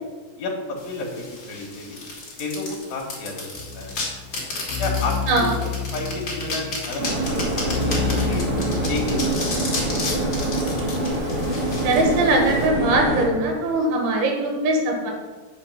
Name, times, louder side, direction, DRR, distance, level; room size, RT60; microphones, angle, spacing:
voice 1, 0.4-2.0 2.4-3.5 3.7-3.9 4.8-8.4 8.9-10.6, left 3 dB, 55° left, -1 dB, 2.5 m, -32 dB
sound 1, 0.8-12.7, left 3 dB, 35° left, 2.0 m, -33 dB
sound 2, 3.5-9.3, left 5 dB, 80° left, 2.6 m, -30 dB
sound 3, 7.0-13.3, right 1 dB, 40° right, 2.2 m, -25 dB
voice 2, 11.8-15.1, right 2 dB, 75° right, 1 dB, 3.4 m, -21 dB
8.3 x 5.6 x 5.7 m, 1.4 s
omnidirectional pair, 4.6 m